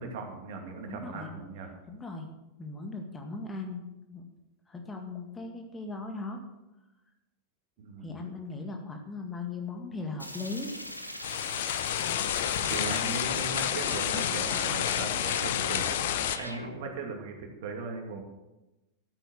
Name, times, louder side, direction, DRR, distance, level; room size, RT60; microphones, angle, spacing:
voice 1, 0.0-1.7 7.8-8.2 12.6-16.0 16.4-18.2, right 4 dB, 50° right, 2 dB, 2.5 m, -38 dB
voice 2, 0.9-1.3 1.9-2.3 2.6-4.2 4.7-6.4 8.0-10.7, left 3 dB, 15° left, 3 dB, 1.8 m, -38 dB
sound 1, 10.2-16.9, equal, 90° left, 1.1 m, -40 dB
sound 2, 11.2-16.4, left 11 dB, 55° left, 0.8 m, -30 dB
12.5 x 9.0 x 6.6 m, 1.0 s
figure-of-eight pair, 90°, 0 cm